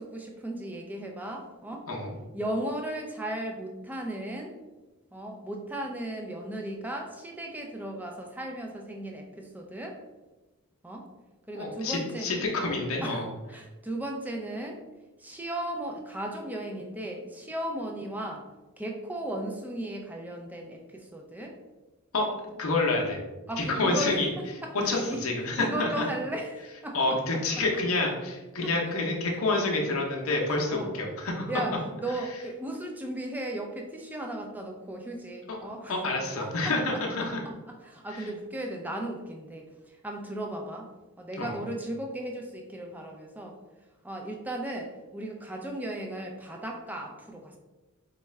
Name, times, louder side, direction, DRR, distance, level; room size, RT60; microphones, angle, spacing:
voice 1, 0.0-1.9 2.3-4.5 5.1-10.0 10.8-11.1 11.5-12.3 13.0-13.2 13.5-14.8 15.2-18.5 18.8-21.6 23.5-24.2 24.6-25.2 25.6-27.4 28.6-28.7 30.6-30.9 31.5-36.0 36.4-40.9 41.2-43.6 44.0-47.6, right 1 dB, 10° right, 1 dB, 0.4 m, -36 dB
voice 2, 11.5-13.3 22.1-22.3 22.6-23.2 23.6-24.3 24.7-26.0 26.9-31.5 35.5-35.6 35.9-37.4 38.1-38.3 41.4-41.6, left 2 dB, 65° left, -1 dB, 0.7 m, -28 dB
4.3 x 2.3 x 3.1 m, 1.1 s
head